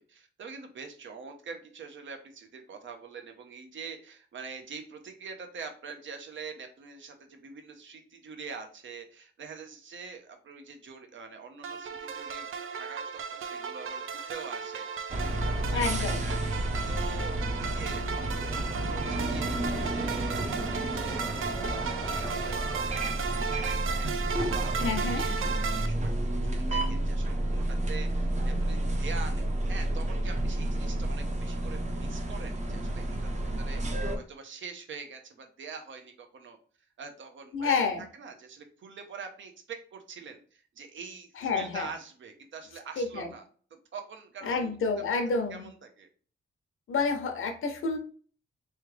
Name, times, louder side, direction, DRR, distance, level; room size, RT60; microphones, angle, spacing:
voice 1, 0.0-18.1 18.5-21.3 21.7-24.9 25.1-26.2 26.4-36.6 37.0-37.8 38.2-44.8 45.5-46.1, right 5 dB, 70° right, 5 dB, 0.9 m, -45 dB
sound 1, 11.6-25.9, right 6 dB, 85° right, 0.5 m, -35 dB
sound 2, 15.1-34.2, right 1 dB, 35° right, 0.7 m, -31 dB
voice 2, 15.7-16.3 24.8-25.2 37.5-38.0 41.4-41.9 43.0-43.3 44.4-45.7 46.9-48.0, left 4 dB, 85° left, 6 dB, 0.8 m, -29 dB
sound 3, 20.0-24.5, left 1 dB, 15° left, 0.4 m, -46 dB
3.6 x 3.3 x 3.2 m, 0.43 s
wide cardioid pair, 140°, 21 cm